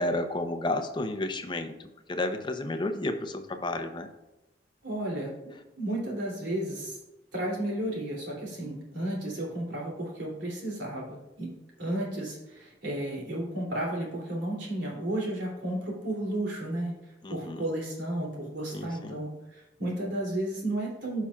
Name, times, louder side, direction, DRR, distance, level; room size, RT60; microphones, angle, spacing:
voice 1, 0.0-4.1 17.2-17.6 18.7-19.2, left 2 dB, 25° left, 7 dB, 0.7 m, -32 dB
voice 2, 4.8-5.3 5.8-7.0 7.3-11.5 11.8-16.9 17.3-21.2, right 1 dB, 85° right, -3 dB, 2.9 m, -33 dB
14.5 x 5.7 x 2.4 m, 0.97 s
head